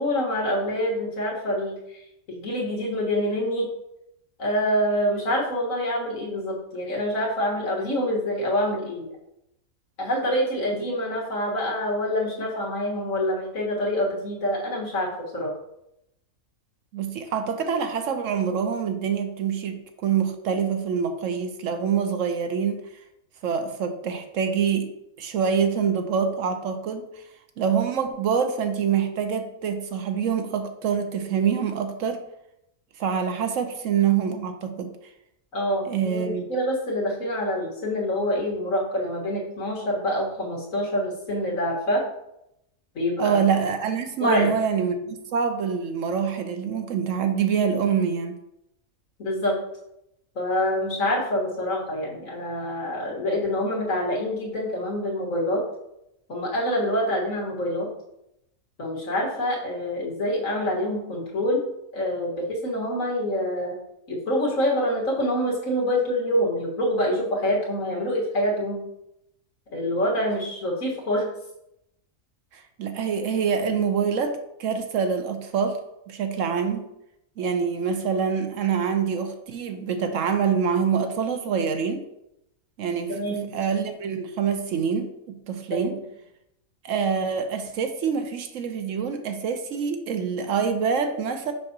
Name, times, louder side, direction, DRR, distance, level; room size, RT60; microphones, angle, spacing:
voice 1, 0.0-2.0 2.3-3.7 4.4-9.1 10.0-15.5 35.5-42.0 43.0-43.4 44.2-44.5 49.2-49.6 50.4-55.6 56.3-57.9 58.8-61.7 61.9-63.8 64.1-68.8 69.7-71.3 83.1-83.5 85.7-86.0, equal, 70° left, -3 dB, 2.0 m, -26 dB
voice 2, 16.9-22.8 23.4-24.9 25.2-27.2 27.6-32.2 33.0-34.9 35.8-36.4 43.2-48.4 72.5-75.8 76.1-76.8 77.4-82.0 82.8-85.9 86.8-91.5, right 7 dB, 70° right, 7 dB, 1.0 m, -25 dB
6.5 x 5.6 x 2.8 m, 0.83 s
omnidirectional pair, 1.5 m